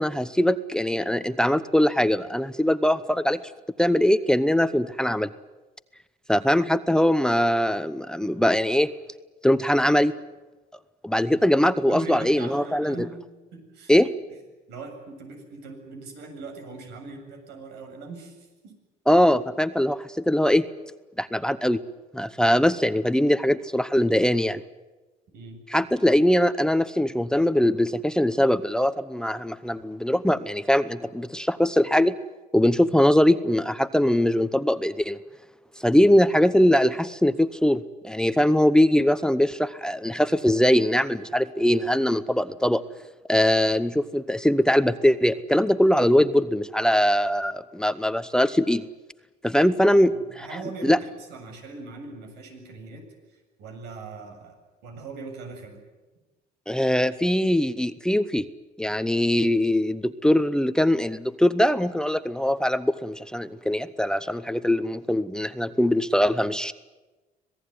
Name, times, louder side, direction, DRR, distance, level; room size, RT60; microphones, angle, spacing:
voice 1, 0.0-3.4 3.8-5.3 6.3-8.9 9.4-10.1 11.0-13.1 13.9-14.1 19.1-20.6 21.2-21.8 22.1-24.6 25.7-32.2 32.5-35.2 35.8-42.8 43.3-48.8 49.4-50.5 50.8-51.0 56.7-58.5 58.8-66.7, left 1 dB, 5° left, 14 dB, 0.8 m, -21 dB
voice 2, 11.9-13.1 13.5-13.9 14.7-18.7 25.3-25.6 50.1-54.6 54.8-55.8, right 3 dB, 85° right, 4 dB, 7.7 m, -40 dB
26.5 x 18.5 x 9.5 m, 1.2 s
cardioid pair, 110°, 17 cm